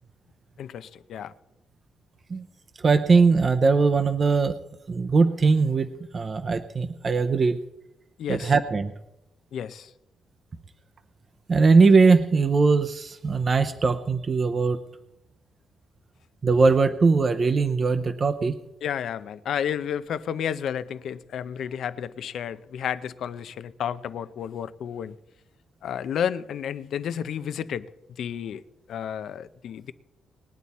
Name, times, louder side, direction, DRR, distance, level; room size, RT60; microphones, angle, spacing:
voice 1, 0.6-1.3 8.2-8.5 9.5-9.9 18.8-25.2 25.8-28.6 28.9-29.9, left 8 dB, 65° left, 0.6 m, -31 dB
voice 2, 2.8-4.5 4.9-5.9 6.1-7.6 8.3-8.9 11.5-14.8 16.4-18.6, right 4 dB, 30° right, 0.6 m, -20 dB
20.5 x 9.4 x 4.2 m
cardioid pair, 165°, 0 cm